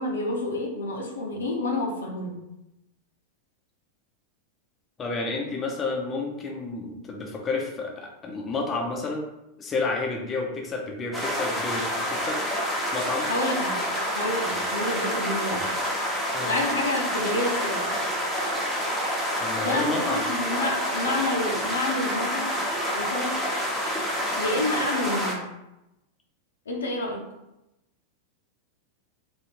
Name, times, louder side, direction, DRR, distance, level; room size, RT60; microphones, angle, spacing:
voice 1, 0.0-2.4 13.3-13.8 14.1-15.7 16.3-17.9 19.6-22.6 22.9-23.3 24.4-25.5 26.7-27.2, left 2 dB, 65° left, 0 dB, 0.7 m, -29 dB
voice 2, 5.0-9.2 9.6-12.4 12.9-13.3 16.3-16.5 19.4-20.2, left 3 dB, 20° left, 0 dB, 0.6 m, -30 dB
sound 1, 11.1-25.3, equal, ahead, 0.9 m, -28 dB
3.5 x 2.6 x 2.9 m, 0.91 s
figure-of-eight pair, 90°, 0 cm